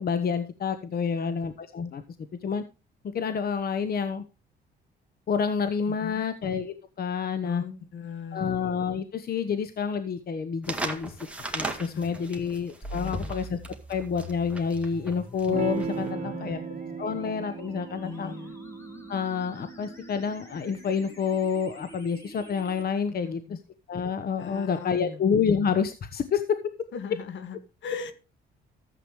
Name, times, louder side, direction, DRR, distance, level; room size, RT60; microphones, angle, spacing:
voice 1, 0.0-2.0 2.4-2.6 3.1-4.2 5.3-7.6 8.3-11.1 11.5-13.6 13.9-16.6 17.0-18.3 19.1-23.4 23.9-26.6, left 6 dB, 50° left, 10 dB, 1.1 m, -28 dB
voice 2, 0.9-1.4 5.9-6.3 7.4-8.5 11.9-12.3 13.0-13.3 15.9-16.8 18.0-18.6 23.2-23.6 24.4-25.2 26.9-28.1, left 6 dB, 70° left, 11 dB, 1.8 m, -39 dB
sound 1, 10.6-16.1, right 2 dB, 5° right, 2.2 m, -37 dB
sound 2, 12.8-22.8, equal, 15° left, 3.8 m, -44 dB
Electric guitar / Strum, 15.5-20.6, right 6 dB, 40° right, 1.4 m, -37 dB
14.0 x 8.1 x 3.1 m, 0.30 s
cardioid pair, 90°, 20 cm